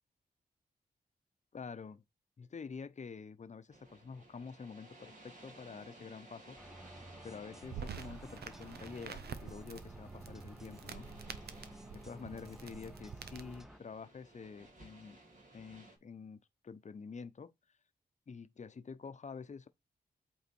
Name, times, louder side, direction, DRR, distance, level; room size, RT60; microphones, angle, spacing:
voice 1, 1.5-2.0 2.4-6.6 7.2-11.1 11.9-15.2 15.5-17.5 18.3-19.7, left 5 dB, 45° left, 0.8 m, -48 dB
sound 1, 3.7-16.0, right 2 dB, 50° right, 2.7 m, -58 dB
sound 2, 6.6-13.8, equal, ahead, 0.5 m, -54 dB
sound 3, 7.6-13.6, right 7 dB, 75° right, 0.9 m, -48 dB
8.3 x 3.6 x 4.5 m
cardioid pair, 70°, 17 cm